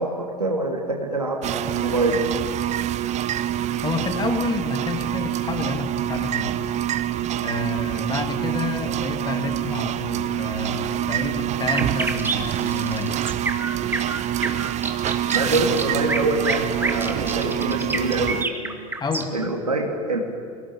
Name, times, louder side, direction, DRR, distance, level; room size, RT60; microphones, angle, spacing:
voice 1, 0.0-2.2 15.3-18.8 19.3-20.2, right 2 dB, 90° right, 0 dB, 3.1 m, -25 dB
sound 1, 1.4-18.4, right 11 dB, 35° right, 1.0 m, -26 dB
voice 2, 3.8-6.6 7.4-13.1 19.0-19.3, left 4 dB, 20° left, 6 dB, 2.8 m, -29 dB
sound 2, 11.7-19.5, right 3 dB, 10° right, 2.3 m, -28 dB
24.0 x 17.5 x 8.8 m, 2.3 s
figure-of-eight pair, 80°, 19 cm